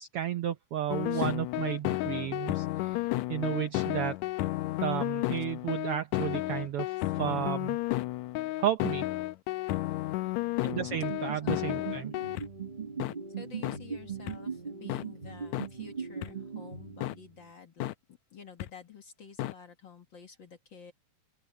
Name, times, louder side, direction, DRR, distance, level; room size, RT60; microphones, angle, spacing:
voice 1, 0.0-3.0 3.3-4.1 4.8-6.9 7.2-7.8 8.6-9.0 10.6-12.1, right 11 dB, 75° right, 1.3 m, -32 dB
sound 1, 0.9-12.5 13.0-13.1 13.6-13.8 14.3-14.4 14.9-15.0 15.5-15.7 16.2-16.3 17.0-17.1 17.8-17.9 18.6-18.7 19.4-19.5, left 17 dB, 80° left, 1.8 m, -32 dB
voice 2, 10.2-10.6 11.4-11.6 13.4-17.9 18.3-20.9, left 6 dB, 45° left, 1.9 m, -50 dB
sound 2, 10.7-17.4, right 5 dB, 20° right, 1.3 m, -40 dB
open air
omnidirectional pair, 3.5 m